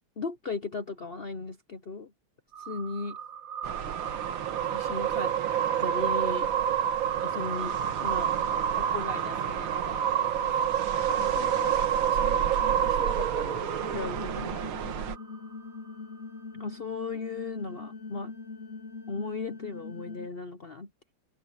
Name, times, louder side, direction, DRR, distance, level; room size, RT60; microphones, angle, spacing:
voice 1, 0.2-2.1 2.6-3.2 4.7-5.3 5.8-6.5 7.2-8.3 8.7-11.8 12.1-14.7 16.5-18.4 19.1-20.9, left 4 dB, 65° left, 0.5 m, -37 dB
sound 1, 2.5-15.0, right 9 dB, 55° right, 1.0 m, -29 dB
sound 2, 3.6-15.2, right 8 dB, 85° right, 2.1 m, -36 dB
sound 3, 13.8-20.3, left 4 dB, 40° left, 2.1 m, -42 dB
open air
omnidirectional pair, 2.2 m